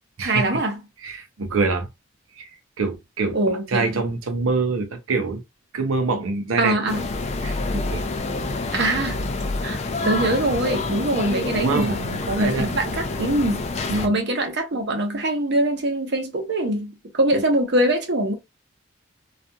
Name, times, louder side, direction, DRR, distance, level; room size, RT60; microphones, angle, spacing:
voice 1, 0.2-0.8 3.3-3.9 6.6-7.0 8.7-9.2 9.6-9.8 10.0-16.9 17.2-18.3, right 1 dB, 55° right, 0.7 m, -23 dB
voice 2, 1.0-1.9 2.3-5.4 5.7-6.8 7.4-8.0 11.5-12.0 12.4-12.8 13.9-14.2, right 3 dB, 85° right, 0.5 m, -25 dB
sound 1, 6.9-14.1, left 3 dB, 35° left, 0.3 m, -27 dB
2.7 x 2.4 x 2.2 m
head